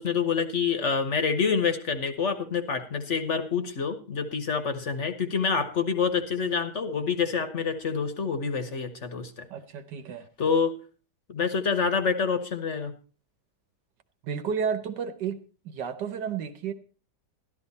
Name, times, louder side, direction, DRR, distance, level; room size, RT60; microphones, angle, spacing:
voice 1, 0.0-9.3 10.4-10.7 11.3-12.9, left 5 dB, 50° left, 9 dB, 1.3 m, -27 dB
voice 2, 9.5-10.3 14.2-15.4 15.6-16.7, right 7 dB, 85° right, 10 dB, 1.7 m, -31 dB
12.5 x 12.5 x 4.2 m, 0.35 s
omnidirectional pair, 1.8 m